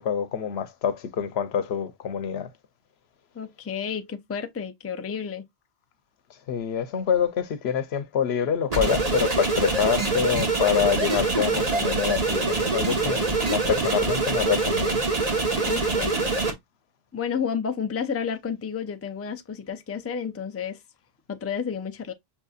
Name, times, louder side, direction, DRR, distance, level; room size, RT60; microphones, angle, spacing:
voice 1, 0.0-2.5 6.5-15.0, left 8 dB, 90° left, 1.0 m, -26 dB
voice 2, 3.3-5.4 15.7-16.1 17.1-20.8 21.3-22.1, left 7 dB, 25° left, 0.3 m, -31 dB
sound 1, 8.7-16.5, right 3 dB, 40° right, 1.2 m, -24 dB
5.8 x 2.7 x 2.3 m
omnidirectional pair, 1.0 m